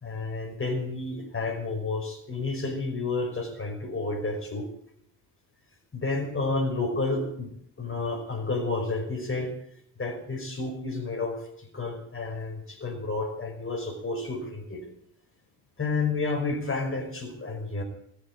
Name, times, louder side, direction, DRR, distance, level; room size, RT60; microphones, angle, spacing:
voice 1, 0.0-4.7 5.9-7.5 7.8-9.5 10.0-14.8 15.8-17.8, left 3 dB, 30° left, 4 dB, 5.1 m, -30 dB
20.5 x 7.6 x 8.9 m, 0.70 s
supercardioid pair, 60°, 39 cm